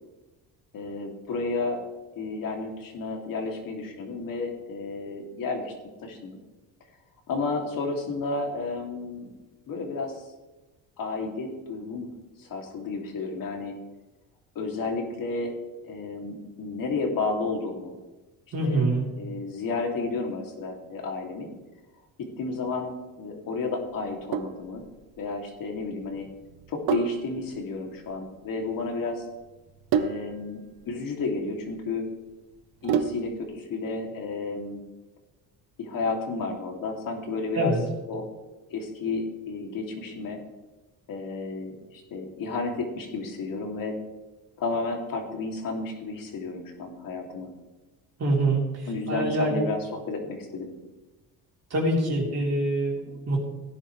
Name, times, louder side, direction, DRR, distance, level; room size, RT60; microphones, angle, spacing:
voice 1, 0.7-1.8 2.2-5.7 6.0-6.4 7.3-9.3 9.7-10.3 11.0-12.1 12.4-13.7 14.5-15.5 15.8-17.9 18.6-18.9 19.2-21.5 22.2-24.8 25.2-26.3 26.7-29.3 29.9-32.1 32.8-34.8 35.8-37.7 38.1-38.3 38.7-40.4 41.1-44.0 44.6-47.5 48.9-50.7, left 3 dB, 60° left, 2 dB, 2.8 m, -32 dB
voice 2, 18.5-19.0 37.5-37.8 48.2-48.6 49.1-49.6 51.7-53.4, right 2 dB, 40° right, -3 dB, 3.7 m, -25 dB
Sink (filling or washing), 24.0-33.5, right 7 dB, 70° right, 1.0 m, -32 dB
17.5 x 10.0 x 3.3 m, 1.1 s
cardioid pair, 110°, 39 cm